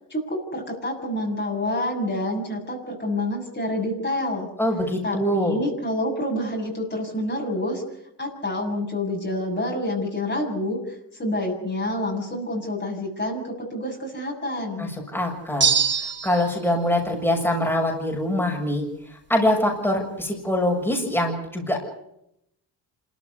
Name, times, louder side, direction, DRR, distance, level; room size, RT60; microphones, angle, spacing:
voice 1, 0.1-4.5 5.0-7.8 8.2-14.9, left 1 dB, 25° left, 0 dB, 7.4 m, -28 dB
voice 2, 4.6-5.6 14.8-15.7 16.0-18.8 19.1-21.8, left 1 dB, 5° left, 0 dB, 7.1 m, -24 dB
sound 1, 15.6-16.6, right 6 dB, 25° right, 1.5 m, -22 dB
26.5 x 14.5 x 9.8 m, 0.79 s
cardioid pair, 100°, 41 cm